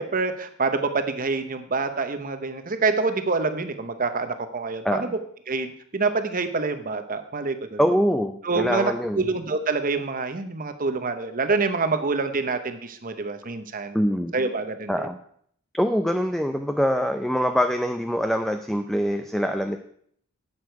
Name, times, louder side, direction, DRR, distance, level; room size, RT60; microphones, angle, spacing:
voice 1, 0.0-5.2 5.5-7.8 8.4-14.0 14.3-15.1, right 4 dB, 40° right, 8 dB, 1.0 m, -26 dB
voice 2, 7.8-9.2 13.9-14.3 14.9-15.2 15.7-19.8, equal, ahead, 6 dB, 0.5 m, -24 dB
11.5 x 8.5 x 4.7 m, 0.63 s
head